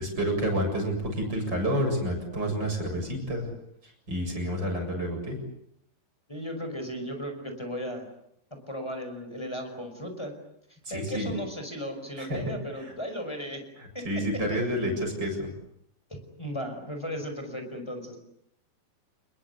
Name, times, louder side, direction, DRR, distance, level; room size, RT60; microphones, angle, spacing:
voice 1, 0.0-3.5 4.1-5.4 10.8-11.3 12.2-12.5 12.8-12.9 13.8-15.5, equal, 25° right, 3 dB, 8.0 m, -29 dB
voice 2, 6.3-8.1 8.7-10.3 10.9-13.6 13.9-14.0 16.1-18.2, equal, 5° left, 6 dB, 5.2 m, -36 dB
29.5 x 21.5 x 8.4 m, 0.73 s
omnidirectional pair, 4.6 m